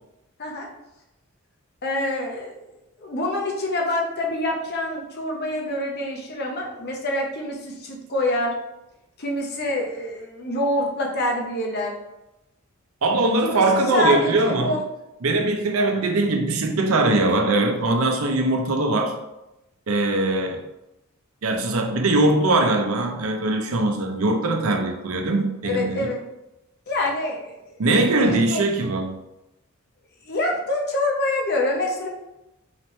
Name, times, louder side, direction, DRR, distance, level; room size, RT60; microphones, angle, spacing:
voice 1, 1.8-2.5 3.0-8.5 9.2-11.9 13.4-14.8 15.8-15.9 25.6-26.2 26.9-27.8 28.2-28.6 30.3-32.1, left 1 dB, 50° left, 0.8 m, -26 dB
voice 2, 13.0-14.8 15.2-19.2 19.9-20.6 21.4-26.1 27.8-29.2, right 2 dB, 75° right, 0.6 m, -21 dB
4.0 x 3.1 x 3.1 m
head